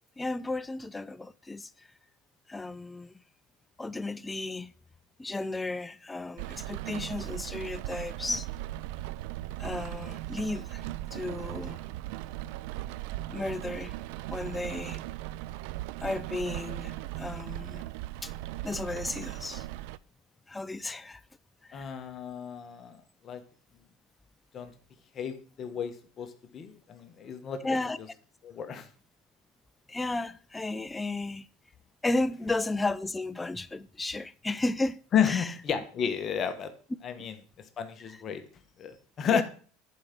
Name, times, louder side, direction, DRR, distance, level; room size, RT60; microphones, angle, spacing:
voice 1, 0.2-1.9 2.5-3.2 3.8-4.7 5.2-8.5 9.6-10.8 11.1-11.8 13.3-13.9 14.3-15.0 16.0-17.8 18.2-18.3 18.6-19.7 20.5-21.2 21.6-21.9 27.6-28.0 29.9-31.5 32.0-35.0 35.2-35.5 37.2-37.3 39.3-39.4, left 2 dB, 15° left, 0.5 m, -33 dB
Rain, 6.4-20.0, right 16 dB, 70° right, 0.4 m, -38 dB
voice 2, 21.7-23.4 24.5-24.7 25.1-27.8 28.4-28.9 35.1-36.7 37.0-37.3 37.8-38.4 38.8-39.4, left 8 dB, 40° left, 1.2 m, -32 dB
11.0 x 5.1 x 5.8 m
supercardioid pair, 100°, 0 cm